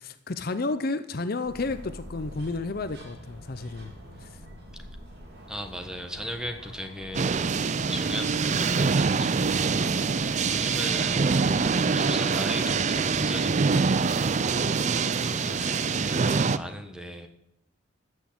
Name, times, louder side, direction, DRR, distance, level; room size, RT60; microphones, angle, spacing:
voice 1, 0.0-3.9 4.2-4.4, left 3 dB, 50° left, 11 dB, 0.6 m, -31 dB
sound 1, 1.4-12.0, equal, 55° right, 3.3 m, -45 dB
voice 2, 5.5-7.5 7.9-17.3, equal, 5° right, 6 dB, 1.2 m, -38 dB
sound 2, 7.1-16.6, right 5 dB, 35° right, 0.4 m, -25 dB
14.0 x 6.4 x 8.6 m, 0.80 s
head